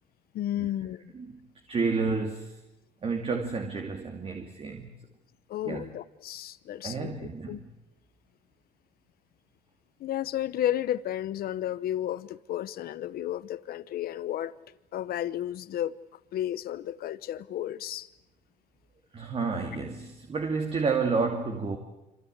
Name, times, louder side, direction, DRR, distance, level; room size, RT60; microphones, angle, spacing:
voice 1, 0.3-1.1 5.5-7.6 10.0-14.5 14.9-15.9 16.3-18.1, left 12 dB, 65° left, 1.0 m, -32 dB
voice 2, 1.7-2.5 3.0-4.9 5.6-5.9 6.8-7.6 19.1-21.8, right 4 dB, 35° right, 2.8 m, -30 dB
26.5 x 26.5 x 8.2 m
cardioid pair, 110°, 17 cm